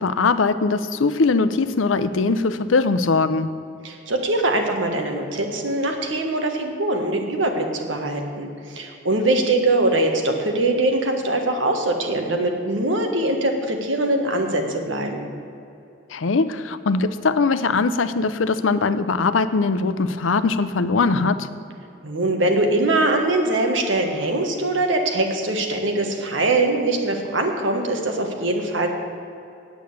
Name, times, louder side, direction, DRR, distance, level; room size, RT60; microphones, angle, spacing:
voice 1, 0.0-3.5 16.1-21.5, left 4 dB, 90° left, 13 dB, 0.6 m, -21 dB
voice 2, 3.8-15.3 22.0-28.9, right 2 dB, 80° right, 4 dB, 1.4 m, -22 dB
8.6 x 8.1 x 8.0 m, 2.7 s
head